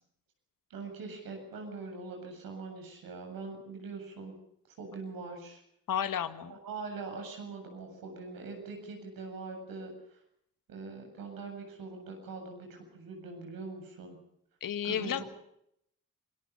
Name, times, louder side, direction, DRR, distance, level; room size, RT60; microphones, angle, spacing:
voice 1, 0.7-4.4 4.8-5.6 6.5-10.2 10.7-14.2 14.8-15.1, right 4 dB, 85° right, 3 dB, 7.9 m, -42 dB
voice 2, 5.9-6.5 14.6-15.3, left 9 dB, 70° left, 11 dB, 1.8 m, -32 dB
28.0 x 20.0 x 5.6 m, 0.73 s
cardioid pair, 55°, 34 cm